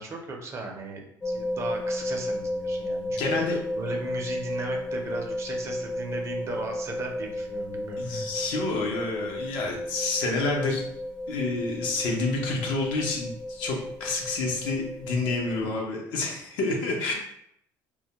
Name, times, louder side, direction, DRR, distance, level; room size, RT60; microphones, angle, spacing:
voice 1, 0.0-8.3, right 3 dB, 35° right, 2 dB, 0.5 m, -37 dB
sound 1, 1.2-15.6, left 1 dB, 10° left, 0.4 m, -33 dB
voice 2, 3.2-3.6 8.0-10.9 11.3-17.1, left 3 dB, 80° left, 0 dB, 0.6 m, -28 dB
2.2 x 2.1 x 2.8 m, 0.74 s
supercardioid pair, 95°, 8 cm